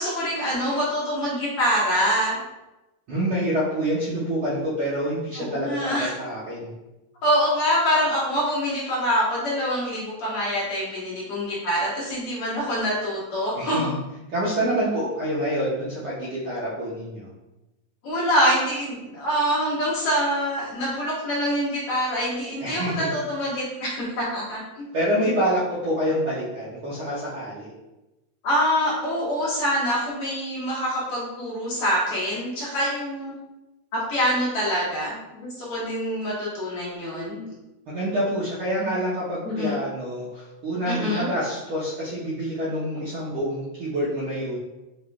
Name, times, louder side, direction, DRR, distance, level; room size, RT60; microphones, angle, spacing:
voice 1, 0.0-2.4 5.4-6.1 7.2-13.9 18.0-24.8 28.4-33.3 33.9-37.5 39.4-39.8 40.9-41.3, equal, 60° left, -7 dB, 1.9 m, -25 dB
voice 2, 3.1-6.7 13.6-14.0 14.3-17.3 22.6-23.1 24.9-27.7 37.9-44.6, equal, 70° right, -8 dB, 1.3 m, -27 dB
6.0 x 3.1 x 2.3 m, 1.0 s
omnidirectional pair, 3.4 m